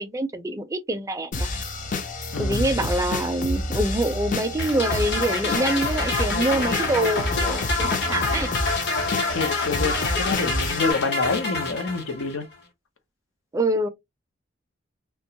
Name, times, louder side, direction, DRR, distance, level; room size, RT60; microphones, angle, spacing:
voice 1, 0.0-1.5 2.4-8.5 13.5-13.9, right 1 dB, 15° right, 0.4 m, -25 dB
sound 1, 1.3-10.9, left 2 dB, 40° left, 0.5 m, -29 dB
voice 2, 2.3-2.8 9.3-12.5, left 4 dB, 85° left, 0.7 m, -27 dB
sound 2, 4.6-12.3, left 3 dB, 55° left, 0.9 m, -27 dB
2.8 x 2.2 x 2.7 m
head